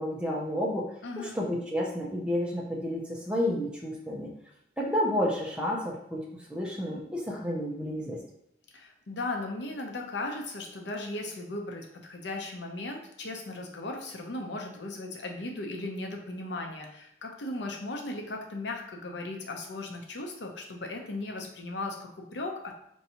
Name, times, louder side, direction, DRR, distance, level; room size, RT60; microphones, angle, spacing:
voice 1, 0.0-4.3 4.8-8.2, equal, 5° right, -3 dB, 0.5 m, -31 dB
voice 2, 1.0-1.4 8.7-22.7, left 2 dB, 80° left, 2 dB, 0.6 m, -37 dB
4.5 x 2.7 x 2.8 m, 0.76 s
head